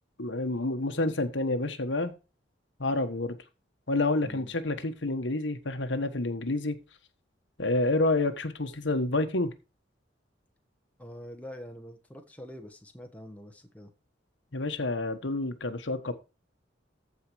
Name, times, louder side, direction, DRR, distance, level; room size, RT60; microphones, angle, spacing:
voice 1, 0.2-2.1 2.8-3.4 3.9-6.8 7.6-9.5 14.5-16.1, left 2 dB, 75° left, 8 dB, 1.4 m, -28 dB
voice 2, 4.2-4.5 11.0-13.9, equal, 10° left, 4 dB, 1.3 m, -45 dB
14.5 x 4.9 x 4.7 m, 0.29 s
head